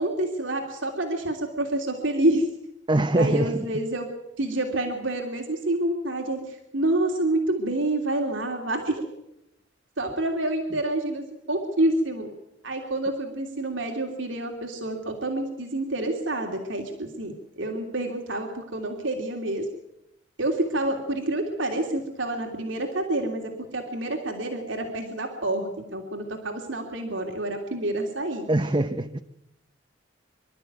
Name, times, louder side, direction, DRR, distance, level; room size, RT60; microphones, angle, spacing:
voice 1, 0.0-2.5 3.2-4.1 4.4-9.0 10.0-12.3 12.6-19.7 20.4-28.5, right 1 dB, 85° right, 2 dB, 3.0 m, -28 dB
voice 2, 2.9-3.7 28.5-29.2, right 1 dB, 25° right, 7 dB, 0.8 m, -23 dB
26.0 x 12.5 x 9.4 m, 0.84 s
head